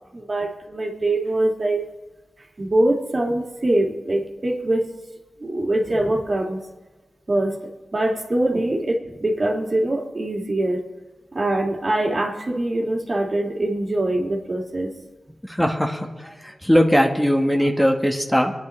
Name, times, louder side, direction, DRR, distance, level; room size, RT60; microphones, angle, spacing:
voice 1, 0.1-1.9 2.6-4.9 5.4-6.6 7.3-7.6 7.9-10.8 11.3-14.9, right 1 dB, 45° right, 0 dB, 2.1 m, -23 dB
voice 2, 15.4-18.5, equal, 10° left, 2 dB, 1.4 m, -20 dB
26.0 x 9.7 x 3.2 m, 1.2 s
cardioid pair, 55°, 0 cm